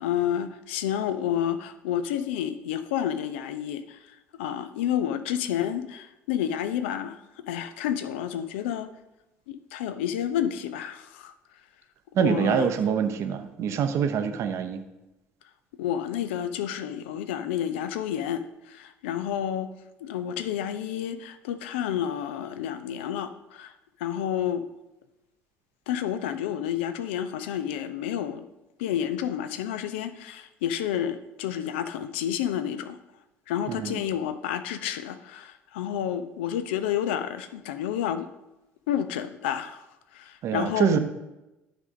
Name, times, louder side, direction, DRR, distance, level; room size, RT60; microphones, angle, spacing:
voice 1, 0.0-8.9 9.5-11.3 12.2-12.7 15.8-19.7 20.0-23.7 24.0-24.7 25.9-28.5 28.8-33.0 33.5-38.3 38.9-39.9 40.1-41.0, left 10 dB, 70° left, 11 dB, 0.5 m, -30 dB
voice 2, 12.1-14.8 33.7-34.0 40.4-41.0, right 7 dB, 50° right, 7 dB, 0.7 m, -25 dB
10.0 x 3.5 x 5.1 m, 0.97 s
figure-of-eight pair, 55°, 6 cm